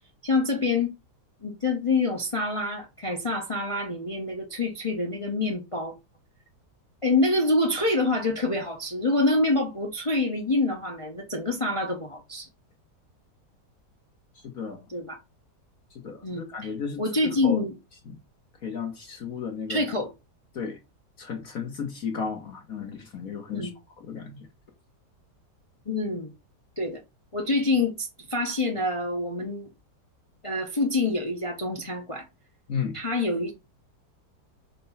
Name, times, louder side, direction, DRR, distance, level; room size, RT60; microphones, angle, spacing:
voice 1, 0.2-0.9 1.4-5.9 7.0-12.5 14.9-15.2 16.2-16.7 17.0-17.7 19.7-20.1 23.5-23.7 25.9-26.3 26.8-27.0 27.3-29.7 30.4-32.3 32.9-33.5, left 2 dB, 25° left, 0.8 m, -26 dB
voice 2, 14.4-14.8 16.0-17.6 18.6-19.8 20.5-20.8 21.2-23.7 24.1-24.4 32.7-33.0, left 6 dB, 60° left, 1.6 m, -34 dB
4.5 x 4.5 x 5.6 m
omnidirectional pair, 1.8 m